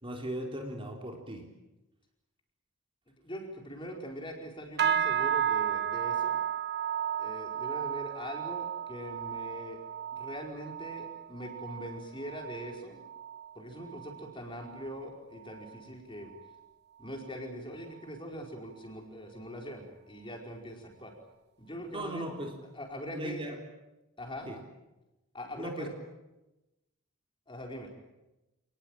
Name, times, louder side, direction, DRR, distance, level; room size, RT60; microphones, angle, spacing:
voice 1, 0.0-1.5 21.9-22.6 23.1-23.6 24.5-24.6 25.6-25.9, right 1 dB, 25° right, 2 dB, 3.6 m, -37 dB
voice 2, 3.2-6.4 7.2-9.8 10.1-13.0 13.5-16.3 17.0-21.1 21.6-22.3 22.6-23.4 24.2-24.5 25.3-25.9 27.5-27.9, equal, 20° left, 2 dB, 4.8 m, -42 dB
sound 1, 4.8-14.3 14.6-15.1 15.5-15.8 16.4-16.5, right 9 dB, 50° right, 1.2 m, -33 dB
29.5 x 19.5 x 9.1 m, 1.0 s
head